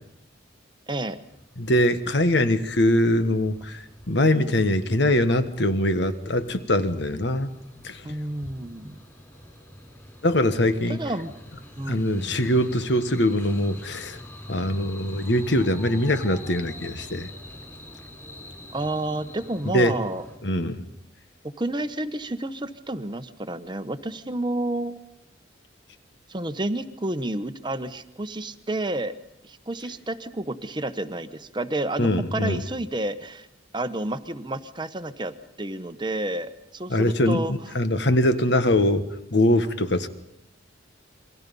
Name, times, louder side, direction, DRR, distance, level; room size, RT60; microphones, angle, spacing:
voice 1, 0.9-1.2 8.0-9.0 11.0-11.3 11.8-12.4 18.7-20.2 21.4-25.0 26.3-29.1 29.4-33.5 33.7-37.5, right 1 dB, 25° right, 10 dB, 1.0 m, -30 dB
sound 1, 1.2-20.4, left 1 dB, 15° left, 4.7 m, -44 dB
voice 2, 1.6-7.5 7.8-8.0 10.2-11.0 11.9-14.2 14.5-17.3 19.7-20.0 20.4-20.8 32.0-32.6 36.9-40.1, left 1 dB, 60° left, 10 dB, 1.5 m, -22 dB
28.5 x 23.5 x 5.4 m, 0.77 s
head